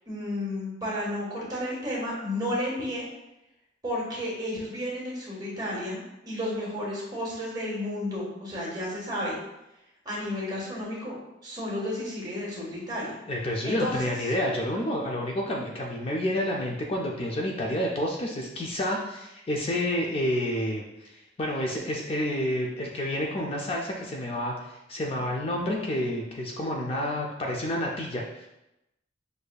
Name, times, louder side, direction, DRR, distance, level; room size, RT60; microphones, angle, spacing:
voice 1, 0.1-3.1 3.8-9.4 10.0-11.1 11.4-13.1 13.6-14.1, left 1 dB, 20° right, -4 dB, 1.3 m, -32 dB
voice 2, 13.3-28.5, left 1 dB, 30° left, -1 dB, 0.4 m, -29 dB
6.4 x 2.6 x 2.2 m, 0.90 s
head